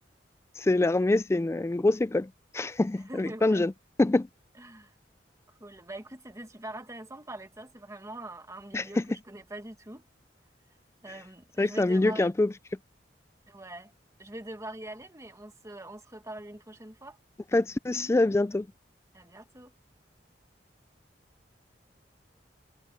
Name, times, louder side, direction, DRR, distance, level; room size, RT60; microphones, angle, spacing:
voice 1, 0.6-3.7 4.0-4.3 8.7-9.0 11.6-12.5 17.5-18.7, left 2 dB, 15° left, 0.3 m, -25 dB
voice 2, 3.1-3.6 4.5-4.9 5.5-9.0 9.3-10.0 11.0-12.3 13.5-13.9 14.2-17.2 19.1-19.7, right 1 dB, 20° right, 1.8 m, -43 dB
head